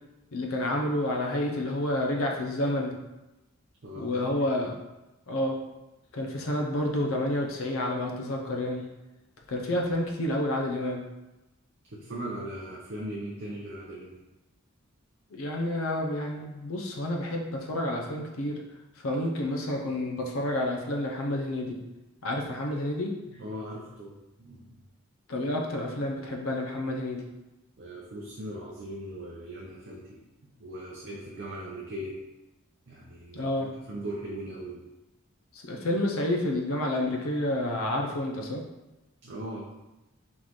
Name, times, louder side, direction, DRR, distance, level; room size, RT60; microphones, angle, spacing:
voice 1, 0.3-3.0 4.0-4.8 5.3-5.6 6.1-8.9 9.5-11.0 15.3-18.6 19.0-21.8 22.2-23.1 25.3-27.2 33.3-33.7 35.5-38.6, left 1 dB, 85° left, 0 dB, 0.6 m, -29 dB
voice 2, 3.8-4.3 11.9-14.2 23.3-24.8 27.8-32.2 32.9-34.8 39.2-39.7, right 1 dB, 55° right, -5 dB, 0.7 m, -39 dB
3.9 x 3.9 x 3.1 m, 1.0 s
head